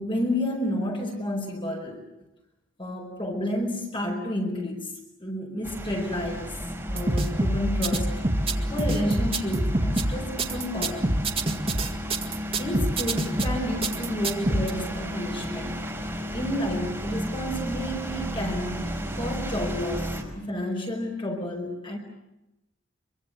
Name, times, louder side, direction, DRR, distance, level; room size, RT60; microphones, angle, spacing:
voice 1, 0.0-2.0 2.8-8.1 8.7-11.2 12.6-15.9 16.3-22.0, left 1 dB, 25° left, 2 dB, 4.7 m, -31 dB
sound 1, 5.6-20.2, equal, 10° right, 4.3 m, -34 dB
sound 2, 6.9-14.7, right 1 dB, 30° right, 2.0 m, -26 dB
25.0 x 24.5 x 7.6 m, 0.93 s
head